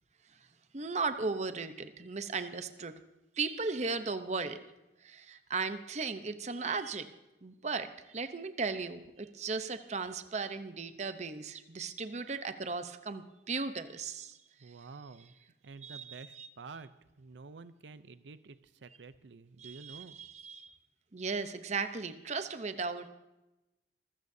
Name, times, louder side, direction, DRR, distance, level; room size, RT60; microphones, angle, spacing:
voice 1, 0.7-2.9 3.4-4.6 5.0-7.1 7.4-14.8 15.8-16.5 19.6-20.7 21.1-23.1, right 4 dB, 40° right, 10 dB, 0.8 m, -36 dB
voice 2, 14.6-15.3 15.6-16.9 17.2-20.2, right 4 dB, 85° right, 13 dB, 0.6 m, -49 dB
24.0 x 15.0 x 2.7 m, 0.98 s
head